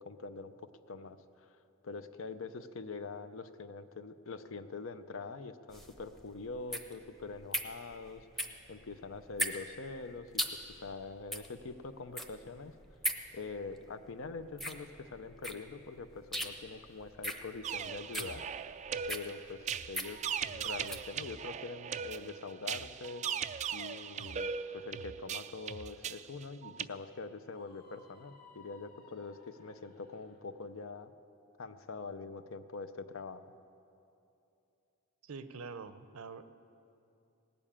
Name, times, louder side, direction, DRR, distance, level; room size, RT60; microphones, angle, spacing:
voice 1, 0.0-1.5 1.8-12.7 13.3-18.4 19.0-23.2 23.7-31.1 31.6-33.4, left 4 dB, 65° left, 11 dB, 0.6 m, -44 dB
sound 1, 5.7-21.1, right 1 dB, ahead, 0.8 m, -40 dB
sound 2, 17.6-26.9, right 7 dB, 35° right, 0.3 m, -39 dB
Screaming, 27.5-30.4, left 5 dB, 45° left, 1.9 m, -60 dB
voice 2, 35.2-36.4, right 4 dB, 70° right, 12 dB, 0.6 m, -45 dB
18.5 x 7.0 x 8.7 m, 2.7 s
head